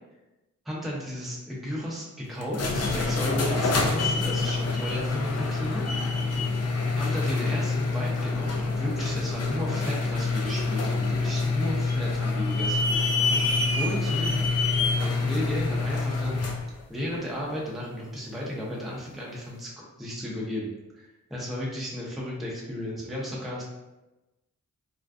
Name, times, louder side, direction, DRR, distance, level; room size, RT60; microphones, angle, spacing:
voice 1, 0.6-5.8 7.0-13.4 13.8-14.5 15.0-16.4 16.9-23.6, equal, ahead, -5 dB, 0.6 m, -34 dB
sound 1, 2.4-16.7, left 3 dB, 50° left, 0.4 m, -26 dB
2.4 x 2.3 x 2.3 m, 1.0 s
cardioid pair, 60°, 33 cm